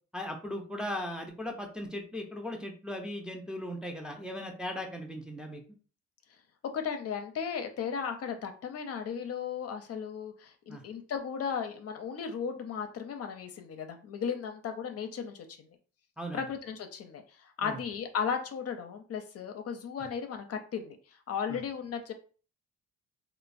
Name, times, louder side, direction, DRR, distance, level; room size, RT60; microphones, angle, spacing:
voice 1, 0.1-5.6 10.7-10.8 16.2-16.4 17.6-17.8 21.5-21.6, left 1 dB, 5° right, 2 dB, 0.5 m, -38 dB
voice 2, 6.7-15.5 16.3-21.0 21.3-22.1, left 7 dB, 55° left, 6 dB, 0.5 m, -35 dB
3.0 x 2.0 x 2.5 m, 0.39 s
cardioid pair, 90°, 30 cm